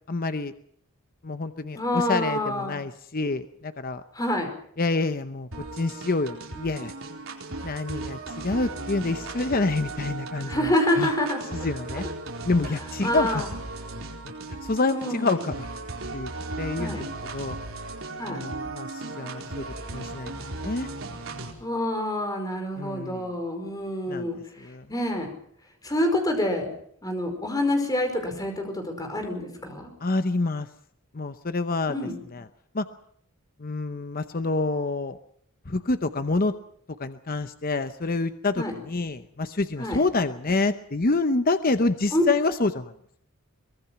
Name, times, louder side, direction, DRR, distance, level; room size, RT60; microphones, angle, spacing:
voice 1, 0.1-0.5 1.2-4.0 4.8-6.9 7.6-10.7 10.9-11.1 11.5-12.0 12.4-13.4 14.2-14.3 14.6-15.7 16.1-16.3 16.6-17.1 17.3-17.6 18.2-19.6 19.9-20.9 22.8-23.2 24.1-24.3 24.6-24.8 30.0-30.7 31.1-31.9 32.3-32.4 32.7-32.9 33.6-35.2 35.7-36.5 37.0-42.9, left 3 dB, 40° left, 10 dB, 0.8 m, -27 dB
voice 2, 1.7-2.8 4.1-4.5 10.4-11.7 13.0-13.5 14.9-15.5 16.8-17.0 18.2-18.4 21.6-25.3 25.8-26.7 27.0-29.9 31.9-32.1 38.5-38.7 39.8-40.0 42.1-42.2, left 1 dB, 15° left, 5 dB, 4.9 m, -27 dB
sound 1, 5.5-21.5, right 2 dB, 65° right, 4.4 m, -36 dB
23.5 x 21.0 x 5.9 m, 0.65 s
head